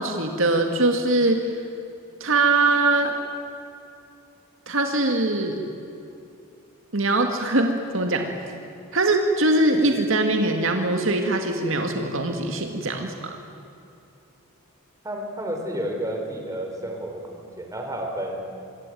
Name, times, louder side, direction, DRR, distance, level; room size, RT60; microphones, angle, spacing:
voice 1, 0.0-1.5 2.2-3.1 4.7-5.6 6.9-8.3 8.9-13.4, right 2 dB, 65° right, 4 dB, 2.1 m, -22 dB
voice 2, 15.0-18.4, right 1 dB, 15° right, 2 dB, 4.5 m, -31 dB
25.5 x 23.0 x 9.3 m, 2.8 s
head